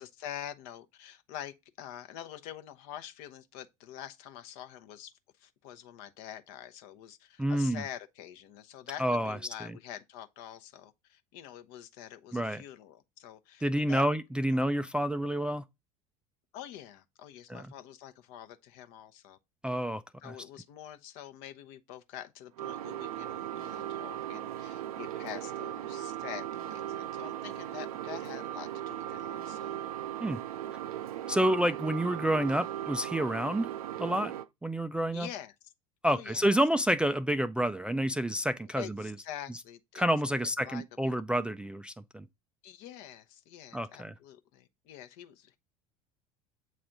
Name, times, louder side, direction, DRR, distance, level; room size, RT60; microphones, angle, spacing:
voice 1, 0.0-5.1 5.4-14.0 14.4-14.6 16.5-19.4 20.2-29.8 35.1-35.7 36.0-36.5 38.8-40.0 40.4-40.8 41.3-41.4 42.6-45.6, left 11 dB, 55° left, 0.7 m, -46 dB
voice 2, 7.4-7.8 9.0-9.4 12.3-12.6 13.6-15.6 17.5-17.7 19.6-20.3 30.2-30.4 31.3-33.7 34.0-34.3 34.6-35.3 36.0-39.1 40.0-42.3 43.7-44.1, right 1 dB, 5° right, 0.3 m, -29 dB
sound 1, 22.6-34.5, right 12 dB, 75° right, 0.4 m, -38 dB
7.7 x 3.3 x 3.9 m
figure-of-eight pair, 70°, 19 cm